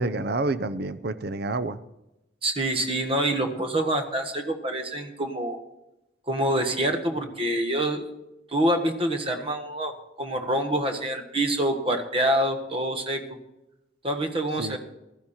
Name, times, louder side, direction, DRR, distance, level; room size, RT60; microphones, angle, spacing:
voice 1, 0.0-1.8 14.6-14.8, right 2 dB, 60° right, 13 dB, 0.7 m, -28 dB
voice 2, 2.4-5.6 6.3-8.1 8.5-9.9 10.2-13.2 14.0-14.8, right 1 dB, 30° right, 5 dB, 1.5 m, -26 dB
15.0 x 12.5 x 4.3 m, 0.91 s
head